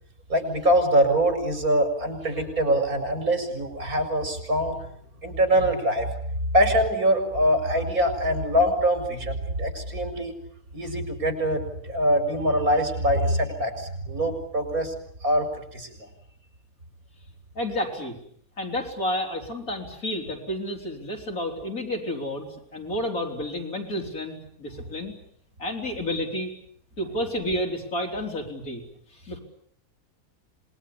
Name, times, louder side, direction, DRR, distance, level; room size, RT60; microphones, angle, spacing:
voice 1, 0.3-4.8 5.2-6.1 6.5-10.3 10.7-14.9 15.2-16.1, equal, 85° right, 6 dB, 5.7 m, -23 dB
voice 2, 17.5-18.1 18.6-25.1 25.6-26.5 27.0-28.8 29.1-29.4, left 1 dB, 80° left, 2 dB, 4.9 m, -30 dB
26.5 x 21.0 x 9.8 m, 0.66 s
omnidirectional pair, 1.5 m